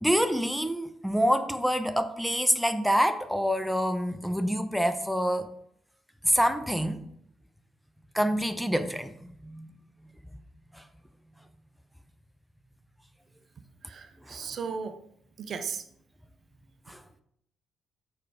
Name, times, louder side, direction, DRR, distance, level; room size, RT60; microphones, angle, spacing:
voice 1, 0.0-5.5 6.2-7.1 8.1-9.7 10.7-10.8 14.3-14.6 16.9-17.0, equal, ahead, 9 dB, 0.6 m, -27 dB
voice 2, 13.9-15.0 15.4-15.8, right 5 dB, 50° right, 8 dB, 0.6 m, -35 dB
6.6 x 5.9 x 3.7 m, 0.71 s
figure-of-eight pair, 40°, 0 cm